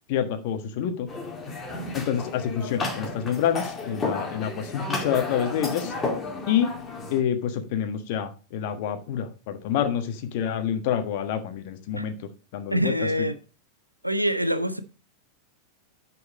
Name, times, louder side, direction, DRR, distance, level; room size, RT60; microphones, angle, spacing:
voice 1, 0.1-1.1 1.9-5.9 6.5-6.8 7.1-13.3, left 9 dB, 50° left, 1.4 m, -27 dB
sound 1, 1.1-7.2, left 3 dB, 15° left, 2.2 m, -32 dB
voice 2, 12.7-13.3 14.0-14.8, equal, 85° right, 0.8 m, -25 dB
9.8 x 4.6 x 5.1 m
figure-of-eight pair, 90°, 0 cm